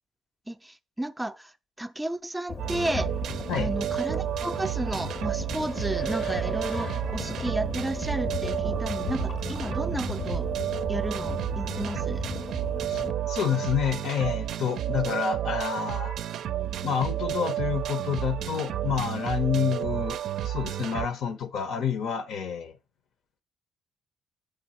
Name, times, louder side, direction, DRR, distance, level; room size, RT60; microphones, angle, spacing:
voice 1, 0.5-3.1 3.6-10.5 10.9-12.3, right 1 dB, 10° right, 0.4 m, -33 dB
sound 1, 2.5-13.1, left 5 dB, 45° left, 0.7 m, -36 dB
sound 2, 2.6-21.1, right 11 dB, 75° right, 0.4 m, -31 dB
voice 2, 12.9-16.1 16.8-20.2 20.4-22.8, left 8 dB, 75° left, 0.8 m, -29 dB
7.2 x 5.2 x 4.2 m
cardioid pair, 90°, 0 cm